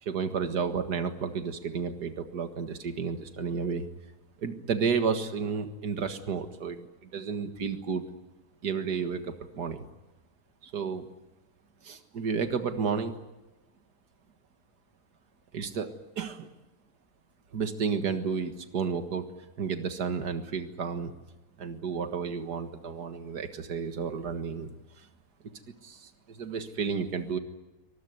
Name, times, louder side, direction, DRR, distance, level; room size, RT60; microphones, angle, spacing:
voice 1, 0.0-3.9 4.4-8.0 8.6-9.8 10.6-11.1 11.8-13.2 15.5-16.5 17.5-19.3 19.6-21.1 21.6-24.7 25.0-25.1 25.8-27.4, right 6 dB, 80° right, 7 dB, 2.2 m, -32 dB
24.0 x 20.5 x 9.5 m, 1.1 s
omnidirectional pair, 1.7 m